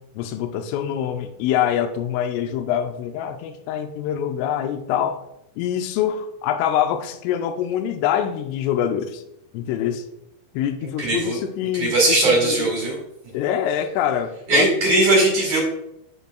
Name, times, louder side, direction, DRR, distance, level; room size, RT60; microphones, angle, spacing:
voice 1, 0.2-5.2 5.6-9.2 9.5-10.0 10.5-12.7 13.3-14.8, left 10 dB, 90° left, 7 dB, 3.2 m, -25 dB
voice 2, 11.0-11.4 11.7-13.0 14.5-15.6, right 2 dB, 55° right, -2 dB, 2.3 m, -19 dB
13.0 x 5.5 x 2.3 m, 0.82 s
omnidirectional pair, 5.7 m